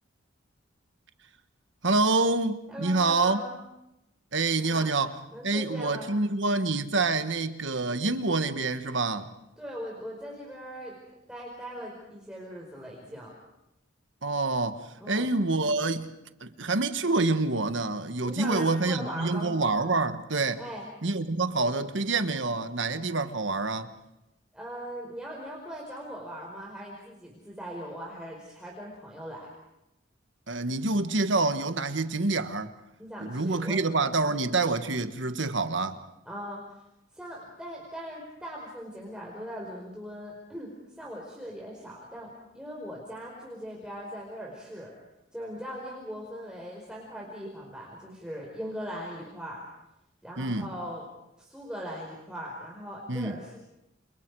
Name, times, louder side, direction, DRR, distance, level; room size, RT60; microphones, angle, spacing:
voice 1, 1.8-3.4 4.3-5.2 5.4-9.3 14.2-16.1 16.4-20.6 21.0-23.9 30.5-32.7 33.2-36.0 50.4-50.7 53.1-53.4, right 3 dB, 70° right, 1.5 m, -27 dB
voice 2, 2.7-3.6 4.6-4.9 5.3-6.1 9.6-11.0 11.3-13.3 15.0-15.3 18.2-19.5 20.6-20.9 24.5-29.5 33.0-33.8 36.3-36.8 37.1-44.9 45.3-49.6 50.2-51.0 51.4-53.6, equal, 5° right, 4.7 m, -40 dB
29.0 x 29.0 x 4.8 m
head